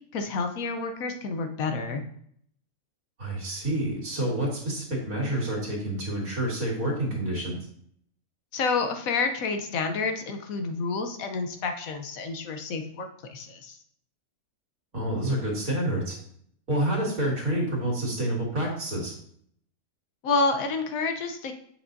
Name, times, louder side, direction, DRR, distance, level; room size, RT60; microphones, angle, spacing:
voice 1, 0.1-2.0 8.5-13.8 20.2-21.5, left 4 dB, 75° left, 6 dB, 1.2 m, -29 dB
voice 2, 3.2-7.6 14.9-16.2 16.7-19.1, right 1 dB, 75° right, -2 dB, 2.6 m, -28 dB
7.7 x 6.1 x 2.6 m, 0.66 s
omnidirectional pair, 1.5 m